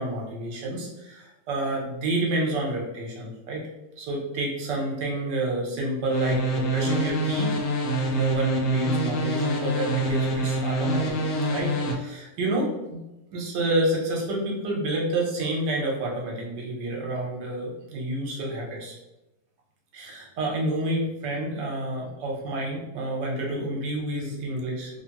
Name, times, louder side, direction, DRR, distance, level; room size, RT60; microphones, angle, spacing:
voice 1, 0.0-3.6 4.0-7.6 8.1-11.2 11.5-13.0 13.3-19.0 19.9-25.0, right 1 dB, 85° right, -1 dB, 1.5 m, -29 dB
sound 1, 6.1-11.9, right 1 dB, 65° left, 0.8 m, -26 dB
3.4 x 2.9 x 2.9 m, 0.96 s
omnidirectional pair, 1.8 m